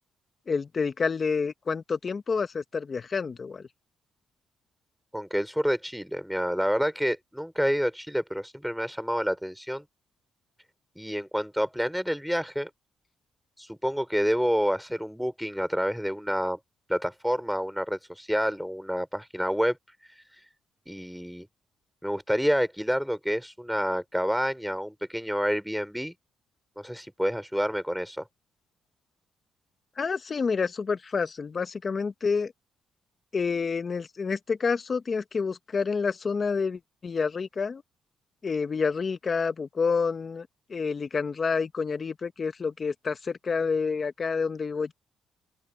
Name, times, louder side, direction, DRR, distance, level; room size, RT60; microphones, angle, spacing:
voice 1, 0.5-3.6 30.0-32.5 33.3-37.8 38.4-44.9, left 5 dB, 40° left, 1.4 m, -28 dB
voice 2, 5.1-9.8 10.9-12.7 13.6-16.6 16.9-19.8 20.9-21.5 22.0-26.1 26.8-28.2, equal, ahead, 3.3 m, -28 dB
open air
cardioid pair, 90°, 0 cm